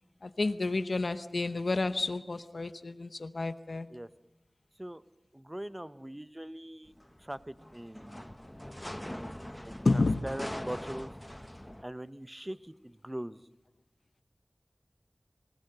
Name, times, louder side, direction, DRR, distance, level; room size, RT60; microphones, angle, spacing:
voice 1, 0.2-3.9 9.8-10.2, left 3 dB, 75° left, 11 dB, 0.8 m, -30 dB
voice 2, 5.3-6.9 7.2-8.4 9.6-11.1 11.8-13.4, right 1 dB, 20° right, 14 dB, 0.8 m, -41 dB
sound 1, 6.9-11.8, left 1 dB, 15° left, 0.8 m, -42 dB
24.0 x 18.5 x 6.8 m, 0.91 s
wide cardioid pair, 60°, 0 cm